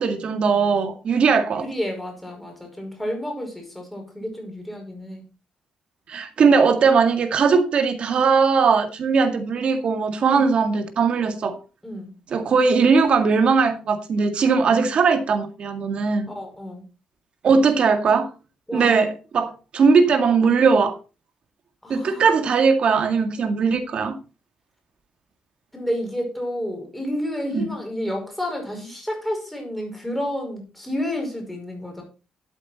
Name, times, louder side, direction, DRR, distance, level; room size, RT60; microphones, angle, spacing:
voice 1, 0.0-1.6 6.1-11.6 12.3-16.3 17.4-18.3 18.7-21.0 21.9-24.2 27.5-27.7, right 5 dB, 50° right, 2.0 m, -19 dB
voice 2, 1.6-5.2 11.8-12.1 14.6-14.8 16.3-16.8 18.7-19.0 21.8-22.3 25.7-32.0, left 1 dB, 5° left, 5.2 m, -30 dB
12.5 x 8.3 x 4.3 m
cardioid pair, 135°, 2 cm